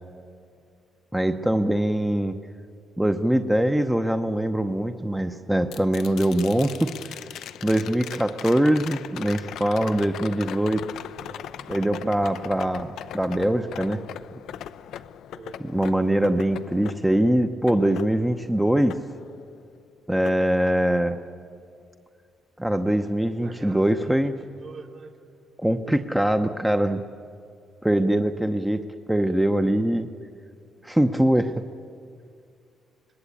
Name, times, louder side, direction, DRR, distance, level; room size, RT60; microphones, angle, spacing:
voice 1, 1.1-2.3 3.0-6.9 7.6-10.8 11.7-14.0 15.6-18.9 20.1-21.2 22.6-24.3 25.6-27.0 27.8-28.8 29.1-30.1 30.8-31.6, right 1 dB, 5° right, 6 dB, 0.9 m, -23 dB
sound 1, 5.7-19.8 20.2-21.3 23.5-23.6, left 10 dB, 80° left, 0.6 m, -40 dB
voice 2, 8.0-8.4 10.7-11.6 15.3-15.6 22.8-25.3 30.6-31.4, right 4 dB, 55° right, 2 dB, 3.7 m, -46 dB
25.5 x 20.0 x 8.6 m, 2.3 s
cardioid pair, 90°, 0 cm